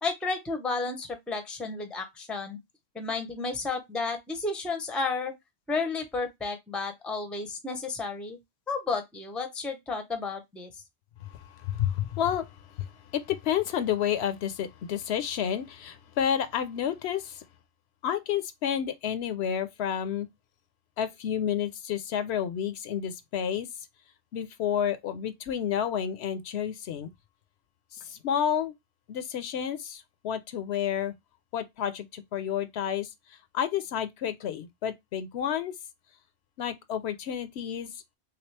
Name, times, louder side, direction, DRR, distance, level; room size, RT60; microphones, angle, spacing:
voice 1, 0.0-2.6 2.9-5.3 5.7-8.4 8.7-10.7, left 4 dB, ahead, 0.5 m, -32 dB
voice 2, 11.2-17.5 18.0-20.3 21.0-23.7 24.3-27.1 27.9-28.7 29.1-31.1 31.5-35.7 36.6-38.0, left 9 dB, 75° left, 0.8 m, -30 dB
3.3 x 3.0 x 3.2 m
omnidirectional pair, 1.1 m